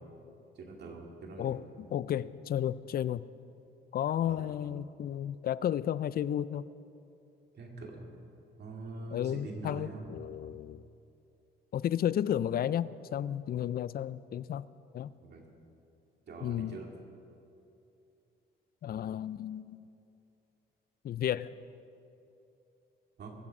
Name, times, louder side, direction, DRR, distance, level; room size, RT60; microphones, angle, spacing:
voice 1, 0.6-1.6 4.2-4.6 7.5-8.1 8.6-10.1 15.2-15.4 16.3-16.9 23.2-23.4, right 3 dB, 55° right, 1 dB, 2.4 m, -44 dB
voice 2, 1.4-3.2 3.9-6.7 9.1-10.8 11.7-14.6 14.9-15.1 16.4-16.8 18.8-19.8 21.0-21.6, left 10 dB, 50° left, 18 dB, 0.4 m, -33 dB
21.5 x 7.4 x 5.4 m, 2.7 s
cardioid pair, 90°, 20 cm